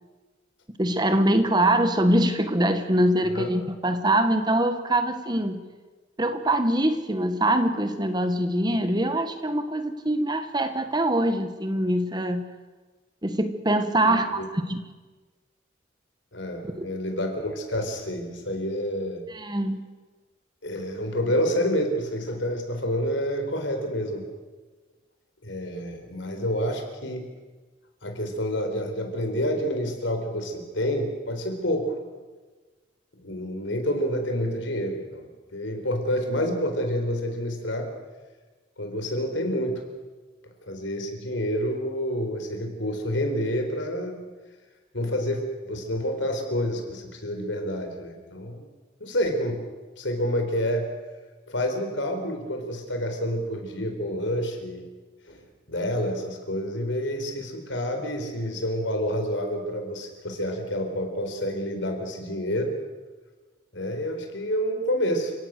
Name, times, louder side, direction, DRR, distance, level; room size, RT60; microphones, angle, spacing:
voice 1, 0.8-5.6 6.2-12.5 13.2-14.8 16.8-16.9 19.3-19.8, right 1 dB, 20° right, 9 dB, 1.4 m, -23 dB
voice 2, 14.0-14.5 16.3-19.3 20.6-24.2 25.4-27.3 28.0-31.9 33.2-37.9 38.8-39.8 40.7-44.2 44.9-48.6 49.0-49.6 50.0-50.9 51.5-54.8 55.3-62.7 63.7-65.3, equal, 75° left, 5 dB, 4.4 m, -28 dB
30.0 x 17.0 x 6.7 m, 1.3 s
head